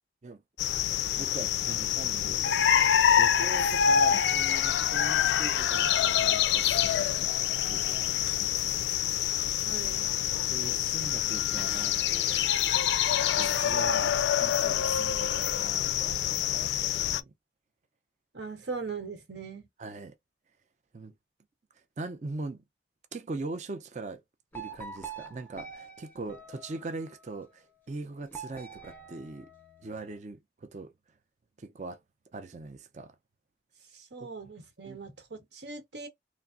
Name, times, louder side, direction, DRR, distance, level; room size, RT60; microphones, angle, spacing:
sound 1, 0.6-17.2, left 9 dB, 75° left, 0.3 m, -26 dB
voice 1, 1.1-2.6 3.2-8.8 10.5-12.4 13.0-17.3 19.8-20.1 20.9-21.1 22.0-22.6 23.1-24.2 24.5-29.5 29.8-30.9 31.6-32.0 32.3-33.1 34.9-35.0, right 3 dB, 40° right, 0.5 m, -41 dB
voice 2, 9.6-10.1 18.3-19.7 33.9-36.1, right 4 dB, 80° right, 1.0 m, -40 dB
sound 2, 24.5-27.2 28.3-30.1, right 5 dB, 10° left, 0.6 m, -45 dB
3.3 x 2.0 x 2.4 m
head